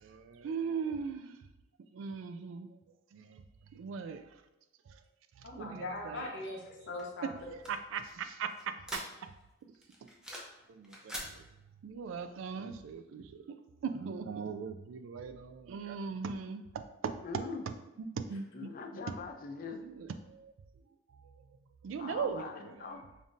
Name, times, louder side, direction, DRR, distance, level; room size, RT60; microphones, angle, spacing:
voice 1, 0.0-1.3 1.9-2.7 3.1-3.4 3.8-4.2 5.6-6.3 7.9-8.5 10.7-11.4 11.8-13.4 13.8-16.6 17.0-17.1 18.0-18.7 19.8-20.5 21.8-22.5, right 6 dB, 75° right, 9 dB, 0.3 m, -39 dB
voice 2, 5.4-7.6, left 2 dB, 65° left, -1 dB, 0.8 m, -41 dB
sound 1, 7.0-9.5 9.8-10.6 10.8-11.3, equal, 5° right, 0.6 m, -44 dB
voice 3, 17.2-17.6 18.5-19.8 22.0-23.0, left 4 dB, 45° left, 5 dB, 0.4 m, -42 dB
5.2 x 2.6 x 2.5 m, 0.98 s
head